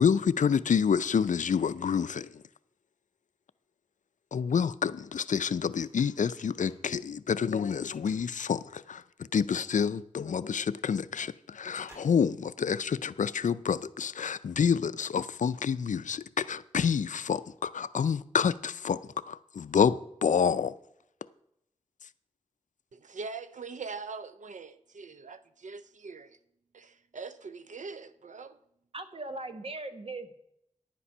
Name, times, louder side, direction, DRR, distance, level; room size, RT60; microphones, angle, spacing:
voice 1, 0.0-2.4 4.3-9.0 9.3-19.0 19.3-20.7, left 7 dB, 80° left, 0.4 m, -28 dB
sound 1, 5.6-6.9 7.3-8.7 9.8-9.9 10.3-10.4 10.9-11.4 11.7-12.5 13.0-13.1, equal, 20° right, 4.1 m, -57 dB
voice 2, 22.9-26.4 26.7-28.6, right 4 dB, 80° right, 0.6 m, -42 dB
voice 3, 28.9-30.3, right 2 dB, 50° right, 1.2 m, -39 dB
10.5 x 8.5 x 5.5 m
wide cardioid pair, 65°, 13 cm